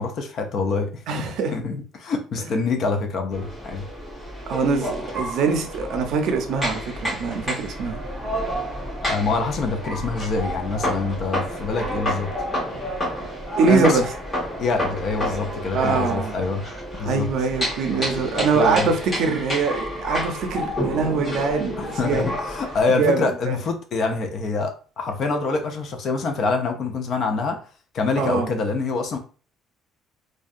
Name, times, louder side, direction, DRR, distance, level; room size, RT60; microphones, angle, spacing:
voice 1, 0.0-1.3 1.5-3.9 9.0-12.3 13.7-14.0 14.6-16.7 17.0-17.3 17.9-18.9 21.8-27.6 27.9-29.2, left 4 dB, 45° left, 0.4 m, -25 dB
voice 2, 1.1-1.5 4.5-8.0 13.6-14.0 15.7-16.4 17.0-22.3 22.9-23.3 28.2-28.5, right 4 dB, 60° right, 0.5 m, -23 dB
sound 1, 3.3-22.8, equal, 20° left, 1.2 m, -30 dB
2.6 x 2.2 x 2.4 m
cardioid pair, 165°, 0 cm